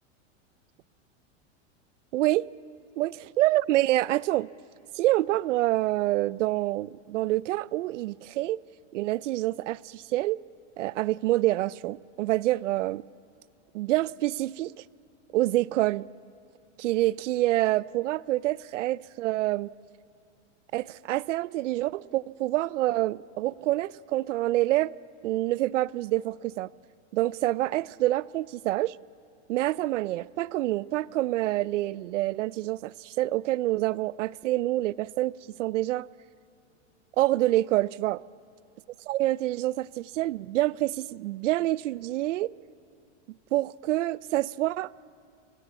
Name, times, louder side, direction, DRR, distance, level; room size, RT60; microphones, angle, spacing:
voice 1, 2.1-2.5 3.0-4.5 5.0-8.6 8.9-10.4 10.8-13.0 13.7-14.7 15.3-16.1 16.8-19.7 20.7-24.9 25.2-26.7 27.1-29.0 29.5-35.3 35.6-36.1 37.2-38.2 39.1-42.5 43.5-44.9, right 16 dB, 80° right, 0.6 m, -27 dB
28.0 x 17.5 x 8.3 m
supercardioid pair, 160°, 36 cm